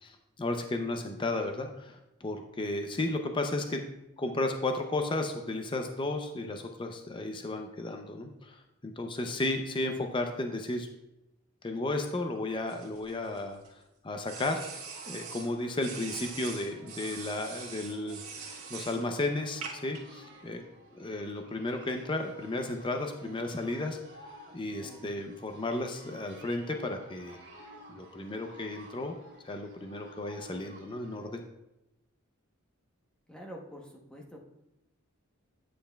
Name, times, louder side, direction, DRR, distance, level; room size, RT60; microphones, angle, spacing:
voice 1, 0.0-3.8 4.2-10.9 11.6-13.6 14.0-14.6 15.1-20.6 20.9-24.0 24.5-27.4 27.9-29.1 29.4-31.4, left 2 dB, 20° left, 5 dB, 0.5 m, -34 dB
sound 1, 12.7-13.7 14.3-15.5 15.8-19.0 19.6-20.0, right 6 dB, 90° right, 1.6 m, -42 dB
sound 2, 14.2-31.3, right 1 dB, 50° right, 1.4 m, -53 dB
voice 2, 33.3-34.4, equal, 5° left, -1 dB, 0.9 m, -46 dB
8.8 x 7.6 x 2.3 m, 0.91 s
head